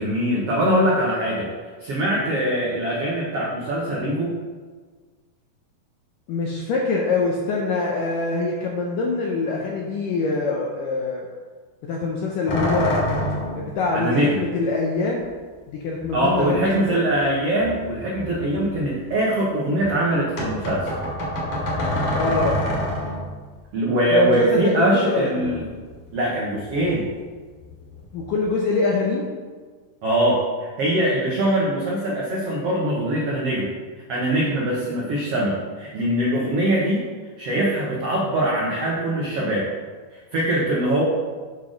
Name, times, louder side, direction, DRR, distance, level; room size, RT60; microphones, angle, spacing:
voice 1, 0.0-1.5 1.8-4.4 13.9-14.4 16.1-21.0 23.7-25.7 26.1-27.0 30.0-33.7 34.1-37.0 37.4-39.7 40.1-41.0, right 1 dB, 85° right, -5 dB, 1.3 m, -22 dB
voice 2, 6.3-11.3 11.8-13.1 13.5-15.3 15.7-17.0 22.1-22.7 24.1-25.6 28.1-29.3, left 3 dB, 80° left, -1 dB, 1.9 m, -24 dB
sound 1, 12.5-13.7 15.2-15.3 16.0-17.2 17.6-19.1 20.4-23.4 25.4-26.3 26.6-27.1 27.5-28.5, left 1 dB, 50° left, 2.8 m, -28 dB
8.2 x 6.2 x 5.1 m, 1.5 s
omnidirectional pair, 4.8 m